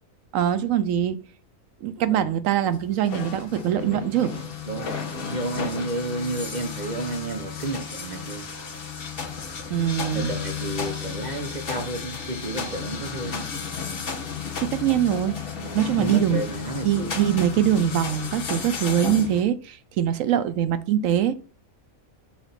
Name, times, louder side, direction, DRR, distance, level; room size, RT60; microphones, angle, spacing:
voice 1, 0.3-1.2 1.8-4.3 9.7-10.4 14.6-15.4 15.7-16.5 16.8-21.4, right 10 dB, 75° right, 0.9 m, -23 dB
sound 1, 2.6-19.4, left 6 dB, 45° left, 1.2 m, -33 dB
voice 2, 4.7-5.0 5.3-8.5 10.1-13.4 15.6-17.2, right 2 dB, 35° right, 1.0 m, -31 dB
6.0 x 4.0 x 5.7 m
omnidirectional pair, 1.4 m